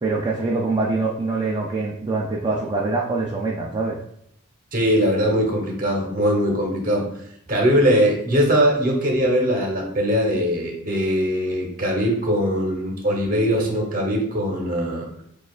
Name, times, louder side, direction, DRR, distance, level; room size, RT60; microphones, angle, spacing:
voice 1, 0.0-4.0, right 3 dB, 20° right, -3 dB, 0.3 m, -24 dB
voice 2, 4.7-7.1 7.5-15.0, equal, 40° right, 0 dB, 0.9 m, -21 dB
6.4 x 2.4 x 2.4 m, 0.73 s
head